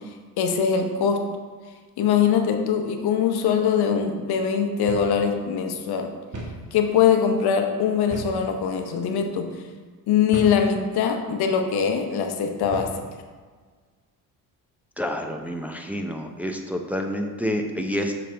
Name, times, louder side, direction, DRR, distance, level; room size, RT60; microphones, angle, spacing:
voice 1, 0.4-1.2 2.0-6.1 6.7-9.5 10.1-12.9, left 7 dB, 65° left, 5 dB, 0.9 m, -22 dB
sound 1, 4.9-5.2 5.5-5.6 6.3-6.6 8.1-8.5 9.1-9.3 10.3-10.7 11.4-11.6 12.6-13.0, right 2 dB, 45° right, 1.8 m, -35 dB
voice 2, 15.0-18.1, equal, 5° right, 3 dB, 0.7 m, -28 dB
6.2 x 6.0 x 3.4 m, 1.5 s
supercardioid pair, 70°, 41 cm